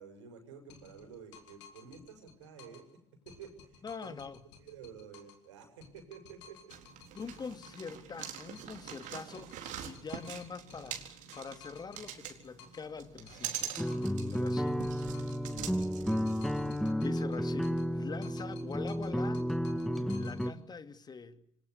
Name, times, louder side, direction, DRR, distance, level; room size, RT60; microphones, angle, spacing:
voice 1, 0.0-2.9 3.2-4.2 4.6-6.7, right 6 dB, 75° right, 6.8 m, -51 dB
sound 1, 0.7-2.9 3.3-5.5 5.8-8.0 8.2-12.9 13.3-15.5 15.8-17.9 18.2-20.5, left 6 dB, 70° left, 4.4 m, -56 dB
voice 2, 3.8-4.4 7.1-13.7 14.3-14.8 15.5-15.6 16.9-19.5 20.1-21.4, left 5 dB, 25° left, 2.6 m, -44 dB
sound 2, 6.7-16.9, right 10 dB, 55° right, 4.2 m, -44 dB
sound 3, 13.8-20.5, equal, ahead, 1.7 m, -32 dB
27.5 x 24.5 x 8.2 m
figure-of-eight pair, 60°, 15 cm